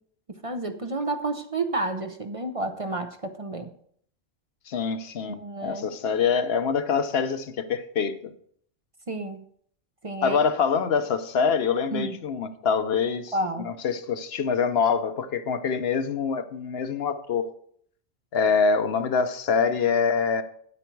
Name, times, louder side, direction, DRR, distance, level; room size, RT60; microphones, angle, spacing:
voice 1, 0.3-3.7 5.2-5.9 9.1-9.5 10.0-10.4 11.9-12.2 13.3-13.7, right 2 dB, 35° right, 0.7 m, -30 dB
voice 2, 4.7-8.3 10.2-13.3 13.6-17.5 18.3-20.4, left 6 dB, 70° left, 1.0 m, -25 dB
9.4 x 8.4 x 4.5 m
omnidirectional pair, 1.1 m